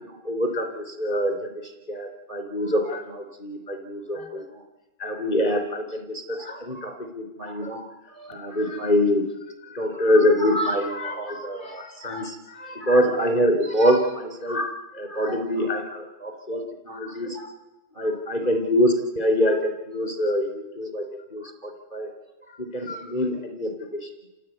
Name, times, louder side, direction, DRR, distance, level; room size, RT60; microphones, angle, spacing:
voice 1, 0.1-4.6 5.0-9.2 9.6-17.5 18.0-22.1 22.6-24.1, equal, 40° left, 4 dB, 4.1 m, -25 dB
29.0 x 16.5 x 9.5 m, 1.1 s
omnidirectional pair, 1.3 m